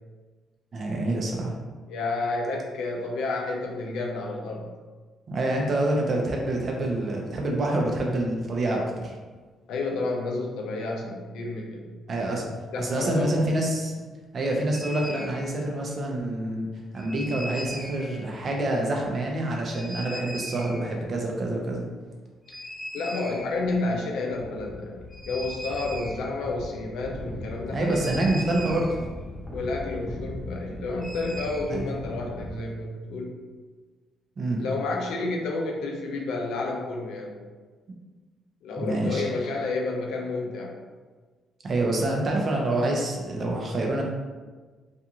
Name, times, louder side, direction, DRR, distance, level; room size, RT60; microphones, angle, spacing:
voice 1, 0.7-1.5 5.3-9.2 12.1-12.5 12.8-13.9 14.3-16.7 16.9-21.9 27.7-29.1 31.7-31.8 34.4-34.6 38.8-39.3 41.6-44.0, right 1 dB, 45° right, 0 dB, 0.6 m, -27 dB
voice 2, 1.9-4.7 9.7-11.9 12.7-13.3 22.9-27.9 29.5-33.3 34.6-37.4 38.6-40.8, left 3 dB, 85° left, 0 dB, 0.5 m, -30 dB
sound 1, 14.7-15.4 17.0-18.1 19.7-20.9 22.4-23.8 24.0-24.1 24.3-32.5, equal, 5° left, 0.7 m, -38 dB
2.5 x 2.4 x 2.9 m, 1.4 s
cardioid pair, 90°, 0 cm